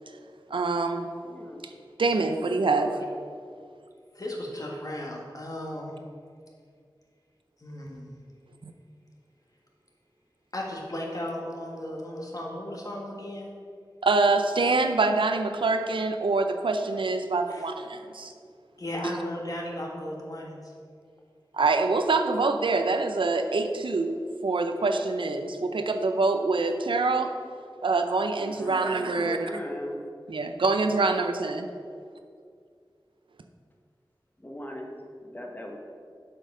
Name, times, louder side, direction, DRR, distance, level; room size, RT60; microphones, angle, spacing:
voice 1, 0.5-1.1 2.0-2.9 8.6-8.7 14.0-18.3 21.5-24.1 24.4-27.3 27.8-29.5 30.3-31.7, right 3 dB, 85° right, 6 dB, 0.5 m, -25 dB
voice 2, 1.2-1.6 2.8-3.1 28.4-30.0 34.4-34.9 35.2-35.8, left 1 dB, 20° left, 1 dB, 1.2 m, -38 dB
voice 3, 4.1-6.0 7.6-8.1 10.5-13.5 17.5-17.7 18.8-20.7, left 1 dB, 45° left, -1 dB, 1.5 m, -35 dB
7.4 x 5.3 x 5.4 m, 2.2 s
wide cardioid pair, 65°, 8 cm